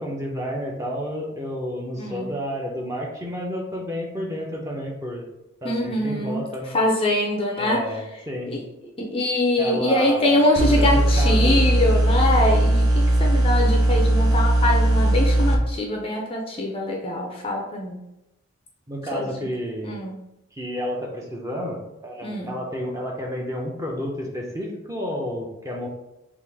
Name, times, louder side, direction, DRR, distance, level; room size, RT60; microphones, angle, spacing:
voice 1, 0.0-5.3 5.6-6.7 7.6-8.0 8.3-8.5 9.6-11.7 18.9-19.9 20.5-25.9, equal, 15° right, -1 dB, 0.6 m, -30 dB
voice 2, 2.0-2.3 5.6-6.4 6.7-7.8 8.5-18.0 19.1-19.3 19.8-20.1 22.2-22.5, left 1 dB, 25° left, 0 dB, 0.5 m, -23 dB
sound 1, 10.5-15.5, right 1 dB, 75° right, 0.7 m, -18 dB
3.7 x 2.5 x 4.7 m, 0.90 s
head